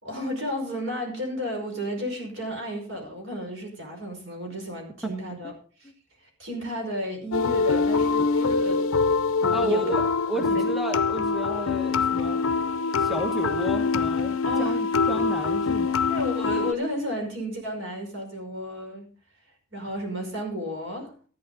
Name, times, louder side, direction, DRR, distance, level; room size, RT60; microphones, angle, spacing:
voice 1, 0.0-5.5 5.8-5.9 6.2-9.0 9.4-9.8 10.3-10.7 14.5-14.8 16.1-19.1 19.7-21.1, equal, 60° right, 3 dB, 5.4 m, -33 dB
sound 1, 7.3-16.7, left 4 dB, 75° left, 0.6 m, -24 dB
voice 2, 9.5-12.4 13.0-16.0, right 2 dB, ahead, 3 dB, 1.2 m, -32 dB
14.0 x 11.5 x 3.9 m, 0.40 s
head